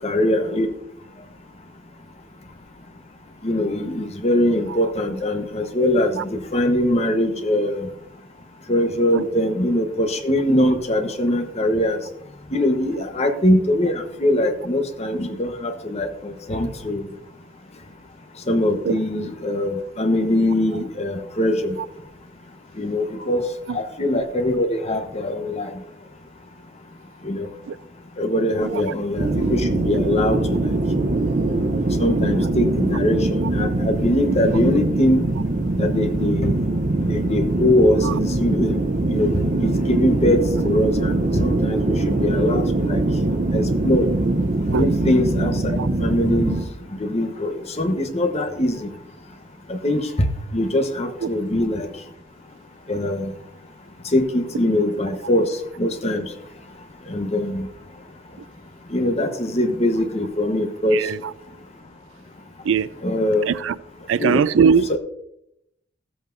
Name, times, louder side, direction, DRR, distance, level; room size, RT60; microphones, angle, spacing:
voice 1, 0.0-0.7 3.4-7.9 8.7-12.0 12.5-17.1 18.5-21.8 22.8-25.7 27.2-27.5 28.2-30.7 32.0-35.2 35.8-36.6 37.1-38.8 39.1-39.3 39.6-43.0 43.5-44.1 44.7-46.6 47.0-48.9 49.7-50.1 50.5-51.9 52.9-53.3 54.1-55.5 55.8-56.2 57.1-57.7 58.9-61.1 63.0-63.4 64.2-64.4 64.9-65.0, left 1 dB, 35° left, 1.1 m, -22 dB
sound 1, 29.2-46.7, right 2 dB, 40° right, 0.7 m, -22 dB
voice 2, 60.9-61.3 62.6-62.9 63.5-63.8 64.1-65.0, right 6 dB, 75° right, 0.4 m, -21 dB
15.0 x 8.0 x 2.6 m
head